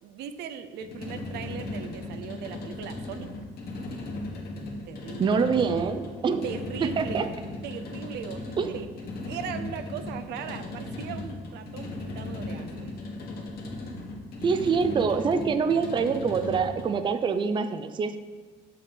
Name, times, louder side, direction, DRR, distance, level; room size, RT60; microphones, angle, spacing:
voice 1, 0.0-3.3 4.9-5.2 6.4-7.3 7.6-8.9 9.2-12.9, right 8 dB, 80° right, 8 dB, 0.6 m, -39 dB
sound 1, 0.8-17.0, left 2 dB, 65° left, 1.5 m, -37 dB
voice 2, 5.2-6.5 7.0-7.3 8.6-8.7 14.4-18.2, right 5 dB, 30° right, 9 dB, 0.4 m, -25 dB
6.3 x 5.7 x 5.3 m, 1.4 s
cardioid pair, 110°, 17 cm